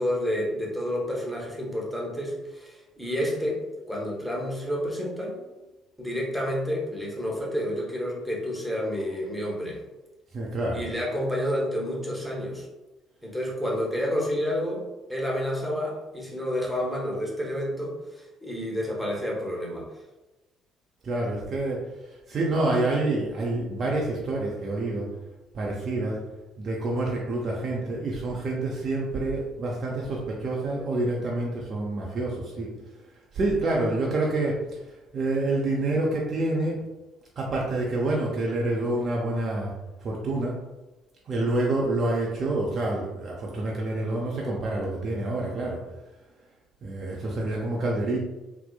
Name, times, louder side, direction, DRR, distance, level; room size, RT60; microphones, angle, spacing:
voice 1, 0.0-5.4 6.0-9.8 10.7-12.7 13.2-19.9, equal, ahead, -3 dB, 0.8 m, -30 dB
voice 2, 10.3-10.8 21.0-21.8 22.3-25.1 25.5-26.2 26.6-32.7 33.3-34.6 35.1-36.8 37.4-39.7 40.0-40.5 41.3-45.8 46.8-48.2, right 2 dB, 45° right, -3 dB, 0.4 m, -27 dB
2.8 x 2.0 x 2.2 m, 1.1 s
figure-of-eight pair, 50°, 0 cm